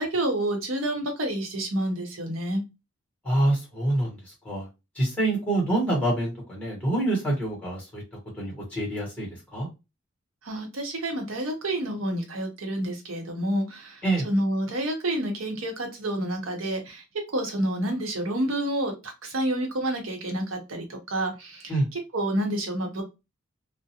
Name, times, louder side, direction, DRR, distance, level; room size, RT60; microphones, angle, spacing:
voice 1, 0.0-2.6 10.4-17.0 17.3-21.7 22.1-23.0, right 1 dB, 70° right, 2 dB, 0.8 m, -29 dB
voice 2, 3.2-4.7 4.9-8.0 8.4-9.7 14.0-14.3 21.7-21.9, right 1 dB, 5° left, -2 dB, 1.1 m, -26 dB
2.4 x 2.1 x 2.8 m, 0.26 s
head